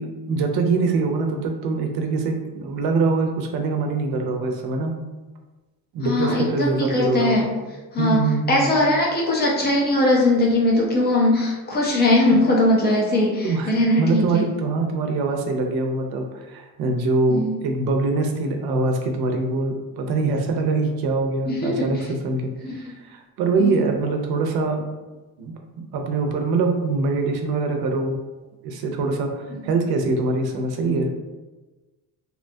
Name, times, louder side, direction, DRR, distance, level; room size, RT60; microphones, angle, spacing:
voice 1, 0.0-4.9 5.9-7.5 8.0-8.7 12.3-12.4 13.4-13.7 14.0-24.8 25.4-25.5 25.9-28.2 28.6-31.1, right 3 dB, 85° right, 3 dB, 0.5 m, -23 dB
voice 2, 6.0-7.4 7.9-8.2 8.5-14.4 17.3-17.5 21.5-21.9 22.6-22.7 23.6-23.8, left 1 dB, 30° left, -2 dB, 0.4 m, -20 dB
2.7 x 2.2 x 2.6 m, 1.2 s
cardioid pair, 180°, 37 cm